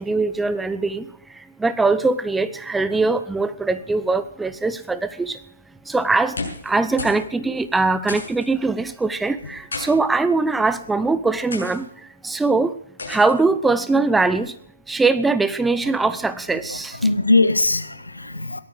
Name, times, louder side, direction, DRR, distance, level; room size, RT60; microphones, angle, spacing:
voice 1, 0.0-5.4 5.8-12.8 13.1-14.5 14.9-17.0, right 3 dB, 5° right, 0.6 m, -22 dB
sound 1, 6.2-6.7 7.0-7.2 7.5-7.6 8.1-8.5 9.4-9.9 10.7-10.9 11.5-11.8 13.0-13.4, left 3 dB, 60° left, 6.9 m, -32 dB
voice 2, 16.7-18.6, left 2 dB, 80° left, 1.6 m, -20 dB
17.5 x 13.0 x 5.1 m
figure-of-eight pair, 135°, 0 cm